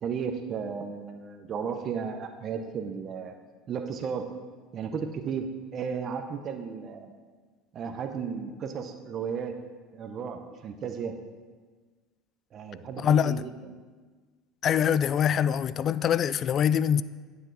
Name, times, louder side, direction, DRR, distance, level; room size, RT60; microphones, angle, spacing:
voice 1, 0.0-3.3 3.7-4.3 4.7-7.1 7.7-9.6 9.9-11.1 12.5-13.5, right 6 dB, 45° right, 0.8 m, -34 dB
voice 2, 13.0-13.4 14.6-17.0, left 8 dB, 45° left, 0.3 m, -24 dB
9.8 x 7.0 x 4.0 m
hypercardioid pair, 85°, 0 cm